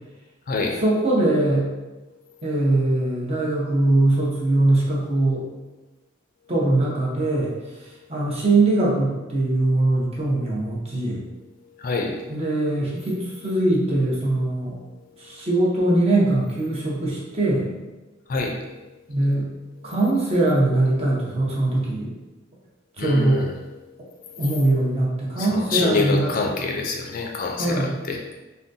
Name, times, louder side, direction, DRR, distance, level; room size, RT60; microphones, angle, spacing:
voice 1, 0.8-1.7 2.4-5.5 6.5-7.5 7.8-11.2 12.3-14.7 15.2-17.7 19.1-19.5 19.8-22.1 23.0-23.5 24.4-26.3 27.6-28.0, right 2 dB, 30° right, -5 dB, 0.7 m, -21 dB
voice 2, 11.8-12.1 18.3-18.5 23.0-23.5 25.4-28.2, left 3 dB, 45° left, 1 dB, 0.4 m, -26 dB
3.6 x 2.2 x 2.6 m, 1.1 s
head